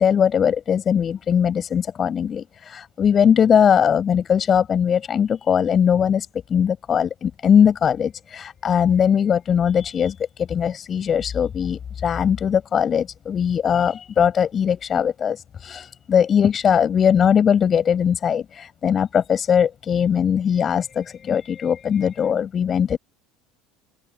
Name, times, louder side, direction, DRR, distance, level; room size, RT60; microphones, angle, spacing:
voice 1, 0.0-23.0, left 8 dB, 35° left, 7.7 m, -20 dB
open air
hypercardioid pair, 70°, 0 cm